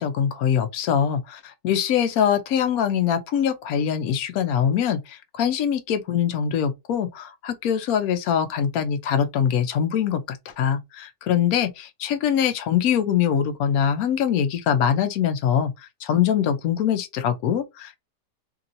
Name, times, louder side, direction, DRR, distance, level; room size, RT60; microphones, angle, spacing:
voice 1, 0.0-15.7 16.0-18.0, left 8 dB, 70° left, 1.0 m, -23 dB
2.9 x 2.8 x 2.5 m
omnidirectional pair, 1.8 m